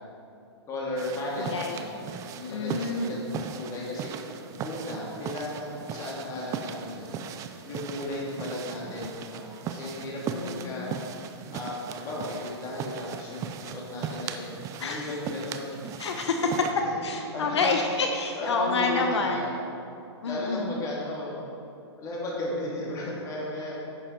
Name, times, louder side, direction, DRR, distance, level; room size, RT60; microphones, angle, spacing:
voice 1, 0.7-2.0 2.3-4.1 4.6-7.2 7.6-10.9 11.5-14.5 14.8-15.8 16.4-16.9 17.3-17.6 18.4-19.6 20.2-21.4 22.0-23.8, left 1 dB, 20° left, -4 dB, 2.4 m, -35 dB
sound 1, 1.0-16.7, right 7 dB, 20° right, 0.5 m, -38 dB
voice 2, 1.3-1.7 2.5-3.2 10.3-11.0 14.8-15.0 16.0-16.5 17.0-19.6 20.2-20.8, left 4 dB, 75° left, 3 dB, 0.9 m, -28 dB
10.5 x 7.4 x 4.4 m, 2.6 s
hypercardioid pair, 135°, 14 cm